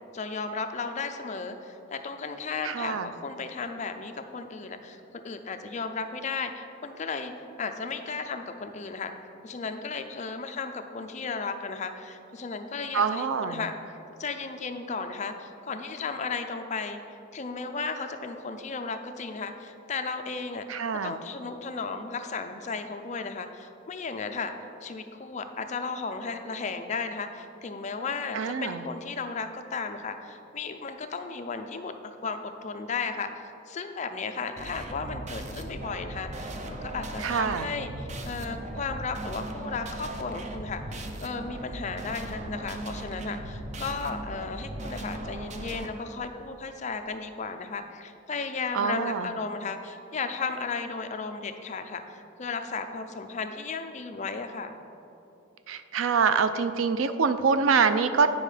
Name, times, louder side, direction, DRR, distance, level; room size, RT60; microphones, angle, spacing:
voice 1, 0.1-7.3 7.6-9.1 9.4-17.0 17.3-24.5 24.8-54.8, left 4 dB, 35° left, 7 dB, 0.5 m, -35 dB
voice 2, 2.6-3.1 12.9-13.6 20.7-21.1 28.3-28.8 37.2-37.7 48.7-49.3 55.7-58.3, right 5 dB, 85° right, 11 dB, 0.4 m, -25 dB
sound 1, 34.6-45.9, right 1 dB, 35° right, 0.6 m, -38 dB
9.4 x 5.4 x 4.9 m, 2.8 s
head